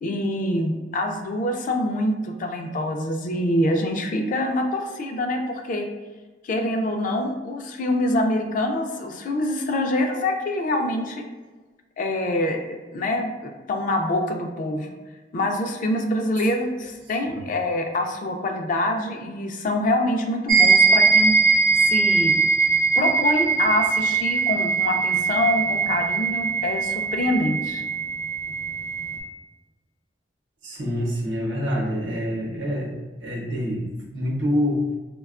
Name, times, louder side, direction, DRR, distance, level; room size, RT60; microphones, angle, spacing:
voice 1, 0.0-5.9 6.4-11.3 12.0-14.9 15.3-21.3 21.8-22.4 23.0-27.8, left 1 dB, 45° left, 4 dB, 0.3 m, -25 dB
sound 1, 20.5-29.2, right 4 dB, 45° right, 0.5 m, -21 dB
voice 2, 30.6-32.9 33.2-34.9, left 1 dB, 75° right, -2 dB, 0.8 m, -26 dB
3.4 x 2.2 x 2.3 m, 1.2 s
head